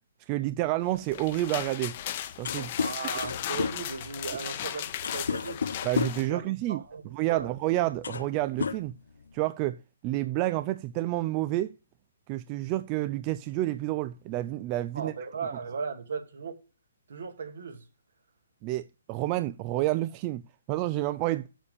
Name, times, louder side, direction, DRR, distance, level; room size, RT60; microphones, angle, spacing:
voice 1, 0.3-2.0 2.4-2.7 5.8-6.8 7.1-9.0 9.3-11.7 12.3-15.1 18.6-20.4 20.7-21.5, right 16 dB, 30° right, 0.4 m, -29 dB
sound 1, 0.9-6.3, left 11 dB, 40° left, 0.8 m, -36 dB
sound 2, 2.0-2.1 2.3-6.3 7.3-7.5 7.9-8.3 8.6-9.5, left 5 dB, 70° left, 0.7 m, -32 dB
voice 2, 2.8-5.7 6.2-6.4 6.7-7.0 7.3-7.5 14.9-16.6 17.1-17.8, right 5 dB, 65° right, 2.2 m, -37 dB
7.3 x 6.9 x 6.8 m
hypercardioid pair, 135°, 0 cm